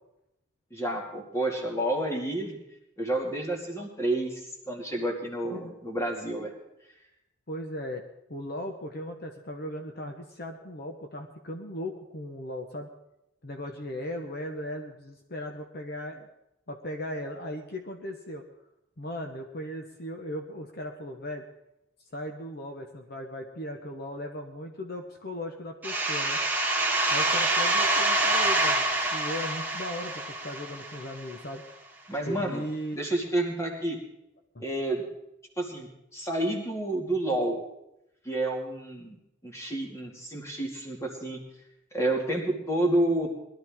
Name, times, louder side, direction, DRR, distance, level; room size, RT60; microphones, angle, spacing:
voice 1, 0.7-2.6 3.0-6.5 32.1-32.6 33.0-34.0 34.6-35.0 35.6-37.6 38.2-39.2 39.4-41.4 41.9-43.3, right 1 dB, 15° left, 0 dB, 2.3 m, -29 dB
voice 2, 7.5-12.9 13.4-16.3 16.7-18.4 19.0-21.4 22.1-26.4 27.1-31.6 32.3-33.0 34.5-34.6, left 1 dB, 50° left, 4 dB, 1.1 m, -37 dB
sound 1, 25.8-31.3, right 2 dB, 10° right, 1.5 m, -26 dB
20.5 x 12.5 x 3.7 m, 0.85 s
head